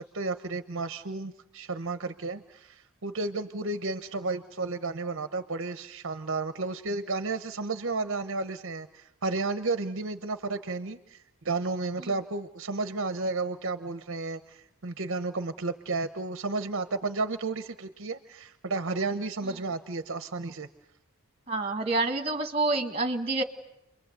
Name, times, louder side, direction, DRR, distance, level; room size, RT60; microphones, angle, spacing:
voice 1, 0.0-20.7, right 3 dB, 60° right, 10 dB, 0.9 m, -32 dB
voice 2, 21.5-23.4, right 3 dB, 25° right, 7 dB, 1.8 m, -27 dB
30.0 x 23.0 x 8.1 m, 0.80 s
head